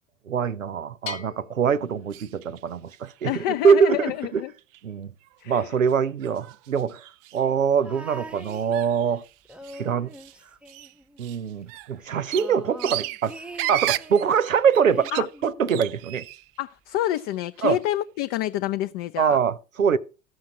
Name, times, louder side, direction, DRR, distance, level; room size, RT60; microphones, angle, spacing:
voice 1, 0.3-4.4 4.8-5.1 5.5-7.0 7.3-9.2 9.8-10.1 11.2-13.3 13.7-16.2 17.6-17.8 19.2-20.0, right 7 dB, 85° right, 0.8 m, -23 dB
Bell, 1.1-2.8, left 7 dB, 80° left, 1.5 m, -41 dB
sound 1, 2.1-2.6 2.9-3.5 4.1-4.2 4.6-4.8 5.3-5.4 5.9-6.0 6.2-7.5 8.4-9.8 10.1-10.4 10.7-16.6 16.9-17.8, right 16 dB, 40° right, 0.6 m, -35 dB
voice 2, 3.2-4.5 5.4-5.8 15.1-15.3 16.6-19.4, left 14 dB, 40° left, 0.6 m, -28 dB
sound 2, 7.8-9.1 9.4-11.4 11.6-11.7 12.0-14.4 14.8-16.1 17.0-17.1, right 1 dB, 5° right, 0.7 m, -43 dB
14.5 x 6.3 x 5.9 m
figure-of-eight pair, 85°, 39 cm